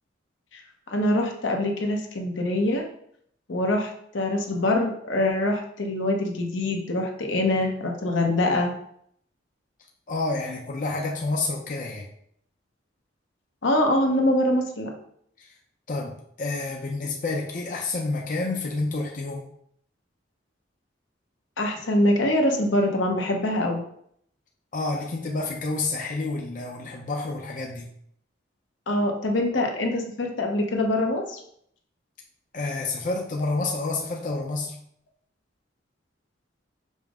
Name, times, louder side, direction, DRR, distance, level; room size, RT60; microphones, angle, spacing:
voice 1, 0.9-2.9 3.5-8.7 13.6-14.9 21.6-23.8 28.9-31.4, left 1 dB, 80° left, 2 dB, 0.8 m, -24 dB
voice 2, 10.1-12.1 15.4-15.5 15.9-19.5 24.7-27.9 32.5-34.8, left 3 dB, 45° left, 0 dB, 0.5 m, -29 dB
5.4 x 2.1 x 4.8 m, 0.68 s
head